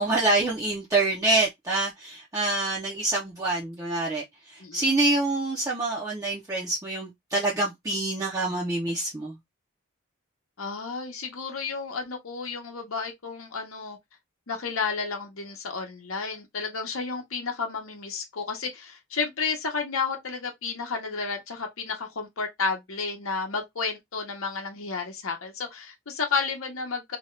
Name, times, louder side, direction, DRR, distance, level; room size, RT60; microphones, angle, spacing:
voice 1, 0.0-9.4, right 2 dB, 15° right, 0.5 m, -26 dB
voice 2, 10.6-14.0 14.5-27.2, left 4 dB, 70° left, 0.8 m, -32 dB
2.8 x 2.3 x 3.0 m
head